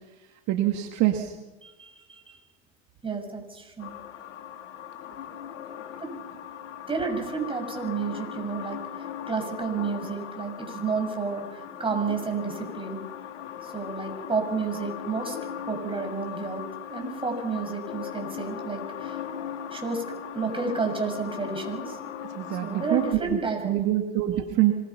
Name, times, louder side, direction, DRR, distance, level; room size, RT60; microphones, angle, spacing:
voice 1, 0.5-1.3 22.3-24.7, right 14 dB, 55° right, 4 dB, 2.2 m, -25 dB
voice 2, 1.6-2.4 3.0-4.0 6.0-6.1 6.9-8.8 9.3-13.1 13.6-15.4 15.7-16.6 16.9-19.2 19.7-20.0 20.3-22.0 22.6-23.8, right 4 dB, 15° right, 2 dB, 7.1 m, -31 dB
sound 1, 3.8-23.2, left 9 dB, 85° left, 2.2 m, -39 dB
25.5 x 21.0 x 6.0 m, 1.1 s
hypercardioid pair, 95°, 35 cm